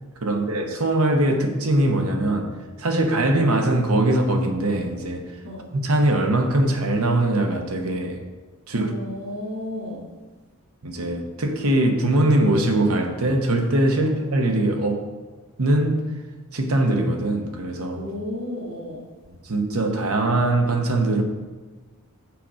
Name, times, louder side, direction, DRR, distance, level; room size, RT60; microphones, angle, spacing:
voice 1, 0.2-2.5 2.8-5.2 5.7-8.2 8.7-8.9 10.8-15.0 15.6-16.0 16.5-18.0 19.3-21.2, right 1 dB, 90° right, 4 dB, 1.1 m, -21 dB
voice 2, 8.7-10.0 14.0-14.1 17.9-19.0, left 1 dB, 65° right, -6 dB, 1.8 m, -33 dB
6.7 x 4.9 x 6.3 m, 1.3 s
head